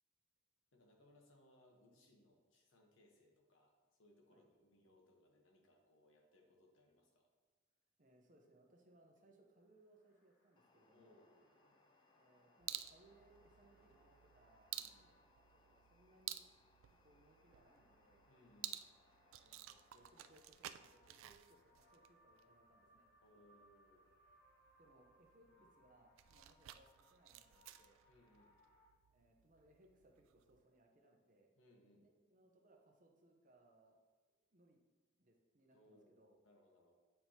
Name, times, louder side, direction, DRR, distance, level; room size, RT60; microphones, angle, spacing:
voice 1, 0.7-7.3 10.9-11.8 14.7-15.1 18.3-18.8 23.2-24.1 25.5-25.6 28.1-28.6 31.5-32.1 35.7-36.9, left 1 dB, 80° left, 1 dB, 1.1 m, -69 dB
voice 2, 8.0-11.3 12.1-14.7 15.1-15.2 15.5-16.5 17.0-18.2 19.2-23.1 24.8-25.5 25.7-28.0 29.1-31.5 32.0-34.0 34.5-34.8 35.1-36.4, right 1 dB, 40° right, 2 dB, 0.8 m, -70 dB
sound 1, 9.5-28.9, equal, 55° left, 1.3 m, -74 dB
sound 2, 10.6-20.5, left 3 dB, 25° left, 0.4 m, -74 dB
sound 3, 12.6-30.6, right 13 dB, 85° right, 0.3 m, -54 dB
8.6 x 4.5 x 2.9 m, 1.3 s
head